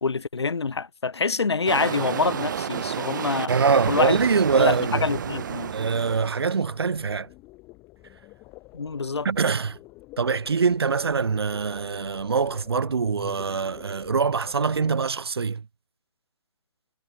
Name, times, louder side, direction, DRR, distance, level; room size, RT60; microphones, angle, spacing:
voice 1, 0.0-3.5 3.9-4.2 4.6-4.7 5.0-5.7 8.7-9.3, left 4 dB, 65° left, 2.3 m, -26 dB
sound 1, 1.6-6.6, right 8 dB, 45° right, 0.9 m, -31 dB
voice 2, 3.5-5.1 5.7-7.3 9.2-9.8 10.2-15.7, right 5 dB, 60° right, 2.6 m, -24 dB
sound 2, 6.6-14.9, left 21 dB, 20° left, 5.4 m, -47 dB
figure-of-eight pair, 135°, 15 cm